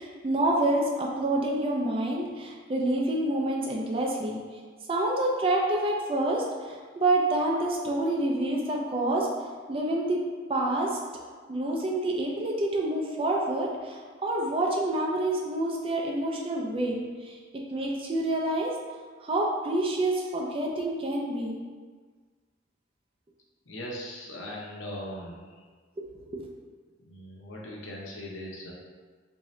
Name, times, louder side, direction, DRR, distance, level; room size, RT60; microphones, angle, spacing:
voice 1, 0.0-4.4 4.9-9.3 9.7-10.2 10.5-11.0 11.5-17.0 17.2-18.7 19.2-21.6 26.3-26.5, right 1 dB, 30° right, -1 dB, 0.4 m, -27 dB
voice 2, 23.7-25.6 27.0-28.7, left 1 dB, 75° left, -3 dB, 0.7 m, -39 dB
3.6 x 2.7 x 3.1 m, 1.5 s
head